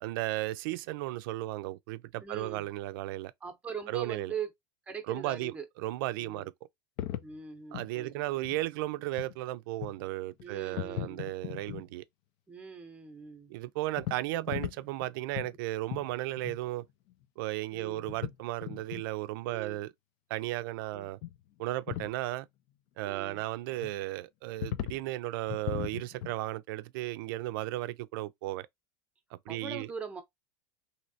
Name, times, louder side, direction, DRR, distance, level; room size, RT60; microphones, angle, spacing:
voice 1, 0.0-3.3 3.9-4.3 5.1-6.5 7.7-12.0 13.5-16.8 17.4-19.9 20.3-21.2 21.6-22.5 23.0-28.7 29.3-29.9, right 16 dB, 70° right, 0.4 m, -35 dB
voice 2, 2.2-2.7 3.4-4.5 4.9-5.7 6.2-6.5 7.2-8.4 10.4-11.3 12.5-13.6 14.4-14.5 17.7-18.1 19.4-19.8 20.9-21.1 23.0-23.4 29.5-30.2, right 6 dB, 10° right, 0.7 m, -42 dB
sound 1, 7.0-7.4 7.7-7.9 8.4-8.6 9.1-9.3 9.8-10.0 10.3-10.5 10.7-11.9 14.0-15.1 15.3-15.6 15.9-16.1 16.4-16.6 16.8-16.9 17.1-17.2 18.0-18.4 18.6-19.0 21.2-21.4 21.6-22.1 23.8-23.9 24.6-25.0 25.5-26.3, left 12 dB, 55° left, 0.4 m, -37 dB
3.1 x 2.7 x 2.7 m
supercardioid pair, 140°, 12 cm